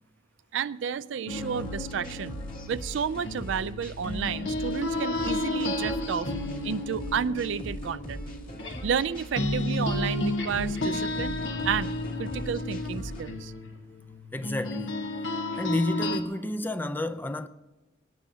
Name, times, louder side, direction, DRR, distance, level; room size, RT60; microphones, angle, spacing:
voice 1, 0.5-2.4 2.7-6.3 6.6-8.3 8.8-11.9 12.2-13.5 15.5-15.6, right 7 dB, 70° right, 0.4 m, -31 dB
sound 1, 1.3-9.1 9.3-16.2, left 2 dB, 70° left, 1.3 m, -32 dB
sound 2, 1.3-13.2, equal, 45° left, 2.2 m, -40 dB
voice 2, 14.3-15.1 15.6-17.5, left 1 dB, 10° left, 0.5 m, -30 dB
21.5 x 18.0 x 2.8 m
head